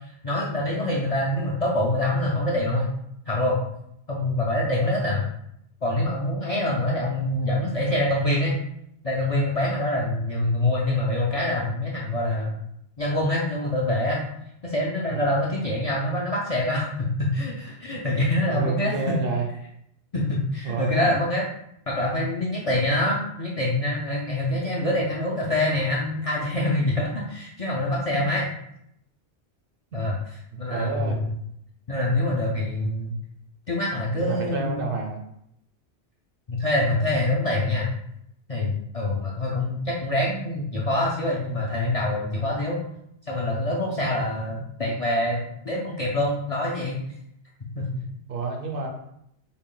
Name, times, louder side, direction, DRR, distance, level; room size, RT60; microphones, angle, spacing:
voice 1, 0.1-2.9 3.3-3.6 4.1-5.2 5.8-8.6 9.0-12.5 13.0-14.2 14.6-19.1 20.1-21.4 21.9-28.5 29.9-30.2 30.6-31.3 31.9-33.1 33.7-34.8 36.5-37.9 38.5-42.8 43.3-47.0 47.8-47.9, left 1 dB, 50° left, -4 dB, 0.4 m, -25 dB
voice 2, 18.5-19.4 20.6-21.1 30.7-31.2 34.2-35.2 48.3-48.9, right 4 dB, 60° right, 1 dB, 0.7 m, -29 dB
3.8 x 2.1 x 3.7 m, 0.76 s
omnidirectional pair, 1.2 m